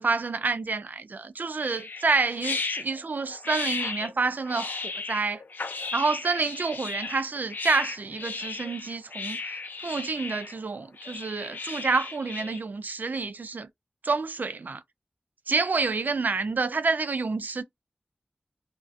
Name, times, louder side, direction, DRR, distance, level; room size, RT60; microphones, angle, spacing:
voice 1, 0.0-5.4 5.9-13.7 14.0-14.8 15.5-17.6, right 4 dB, 65° right, 0.3 m, -28 dB
sound 1, 1.6-12.6, left 4 dB, 90° left, 0.4 m, -35 dB
2.4 x 2.2 x 2.4 m
wide cardioid pair, 45°, 3 cm